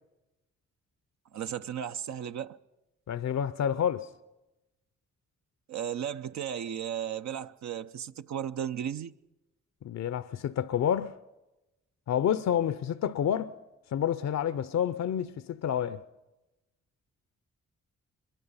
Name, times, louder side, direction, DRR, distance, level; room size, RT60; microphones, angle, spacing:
voice 1, 1.3-2.6 5.7-9.1, right 9 dB, 65° right, 0.6 m, -35 dB
voice 2, 3.1-4.1 9.8-11.2 12.1-13.5 13.9-16.0, left 9 dB, 60° left, 0.6 m, -29 dB
23.0 x 22.5 x 5.5 m
supercardioid pair, 50°, 30 cm